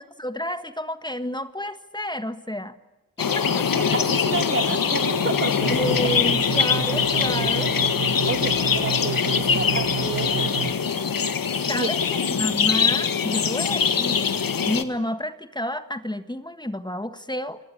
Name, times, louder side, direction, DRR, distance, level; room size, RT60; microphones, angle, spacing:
voice 1, 0.0-2.7 3.2-3.7 5.7-7.7 9.5-9.7 11.7-14.3 14.6-17.6, left 1 dB, 15° left, 10 dB, 1.6 m, -30 dB
sound 1, 3.2-14.8, left 6 dB, 80° left, 1.8 m, -23 dB
voice 2, 3.5-5.9 8.3-10.7 11.7-11.9 12.3-12.4, right 3 dB, 40° right, 9 dB, 2.6 m, -30 dB
sound 2, 5.6-10.7, right 8 dB, 70° right, 1.3 m, -31 dB
29.0 x 19.0 x 10.0 m, 1.0 s
wide cardioid pair, 70°, 33 cm